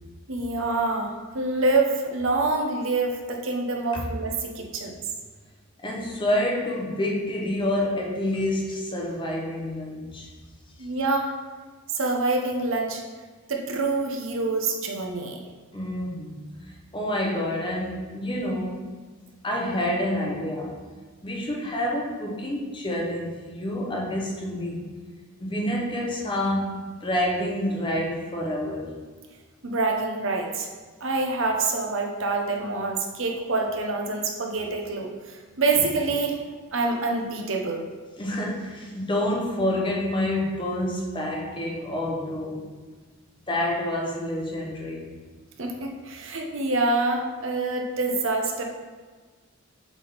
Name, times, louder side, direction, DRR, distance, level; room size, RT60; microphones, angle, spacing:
voice 1, 0.3-5.0 10.8-11.3 11.9-13.0 13.5-15.4 29.6-30.7 31.0-36.4 36.7-37.8 45.6-48.6, right 3 dB, 60° right, 1 dB, 0.8 m, -26 dB
voice 2, 5.8-10.3 15.7-18.9 19.4-20.8 21.2-24.9 25.4-28.9 35.7-35.9 38.2-42.7 43.5-45.1, left 1 dB, 20° left, -1 dB, 0.8 m, -28 dB
7.2 x 3.6 x 4.0 m, 1.4 s
head